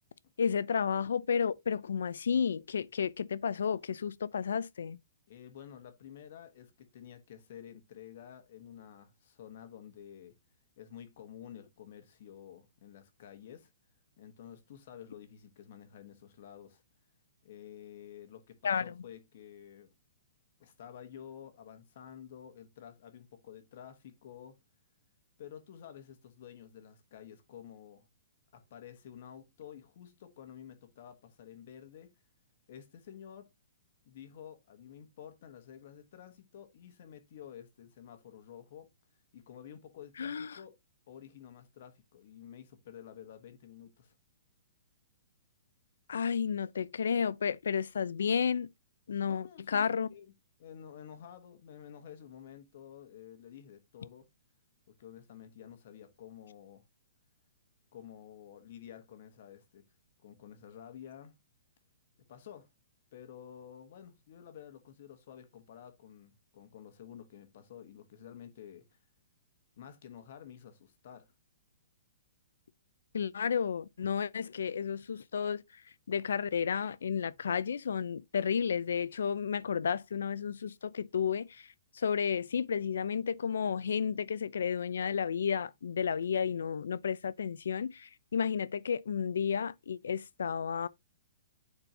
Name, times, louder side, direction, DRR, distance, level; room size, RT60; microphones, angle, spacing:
voice 1, 0.4-5.0 18.6-18.9 40.2-40.6 46.1-48.7 49.1-50.1 73.1-75.8 76.1-90.9, left 7 dB, 85° left, 0.6 m, -32 dB
voice 2, 5.3-10.3 10.8-13.7 14.2-16.8 17.4-19.9 20.6-24.6 25.4-28.1 28.5-32.1 32.7-33.5 34.0-38.9 39.3-40.7 41.1-44.1 49.3-50.3 50.6-54.3 55.0-56.8 57.9-59.8 60.2-61.4 62.3-62.7 63.1-69.0 69.8-71.3, left 9 dB, 40° left, 1.3 m, -51 dB
10.5 x 4.4 x 2.8 m
hypercardioid pair, 180°, 0 cm